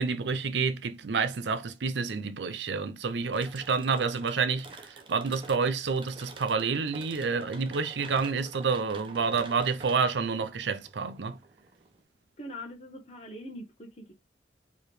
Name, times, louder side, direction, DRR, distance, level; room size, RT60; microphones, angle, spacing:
voice 1, 0.0-11.4, right 5 dB, 80° right, 0.5 m, -29 dB
sound 1, 3.3-12.0, right 3 dB, 30° right, 0.7 m, -49 dB
voice 2, 12.4-14.2, equal, 35° left, 1.0 m, -42 dB
4.7 x 3.1 x 3.1 m
head